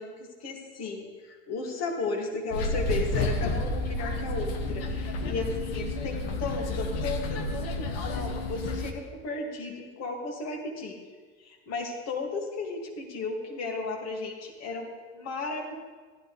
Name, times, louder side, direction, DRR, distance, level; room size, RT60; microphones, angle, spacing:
voice 1, 0.0-11.0 11.4-14.9 15.1-15.7, left 3 dB, 60° left, 1 dB, 2.5 m, -34 dB
sound 1, 2.5-8.9, left 2 dB, 85° left, 1.1 m, -30 dB
15.5 x 11.5 x 3.4 m, 1.4 s
hypercardioid pair, 70°, 29 cm